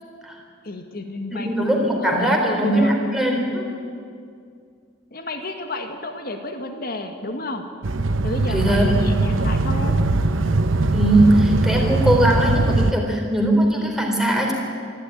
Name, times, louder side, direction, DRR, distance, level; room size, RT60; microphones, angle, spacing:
voice 1, 0.6-3.0 5.1-7.6 8.2-10.0, left 2 dB, 50° left, 5 dB, 2.0 m, -31 dB
voice 2, 1.3-3.7 8.5-8.9 10.9-14.5, right 1 dB, ahead, 0 dB, 3.5 m, -20 dB
sound 1, 7.8-12.9, right 2 dB, 80° right, 1.0 m, -20 dB
25.5 x 12.0 x 10.0 m, 2.2 s
head